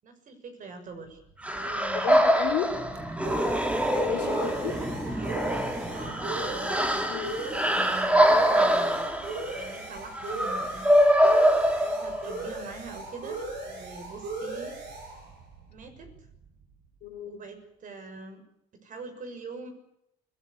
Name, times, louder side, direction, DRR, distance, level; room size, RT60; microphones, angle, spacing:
voice 1, 0.0-1.2 1.5-2.2 4.3-5.7 5.9-7.1 7.4-9.1 9.5-10.9 11.8-14.8 15.7-16.1 17.3-18.4 18.8-19.7, right 4 dB, 50° right, 8 dB, 6.4 m, -43 dB
sound 1, 1.3-16.7, right 2 dB, 80° right, 7.3 m, -38 dB
sound 2, 1.4-12.5, equal, 5° right, 2.7 m, -24 dB
voice 2, 1.6-2.7 3.9-4.7 7.1-7.4 17.0-17.4, left 11 dB, 90° left, 6 dB, 4.1 m, -34 dB
23.5 x 18.0 x 8.3 m, 0.79 s
cardioid pair, 110°, 17 cm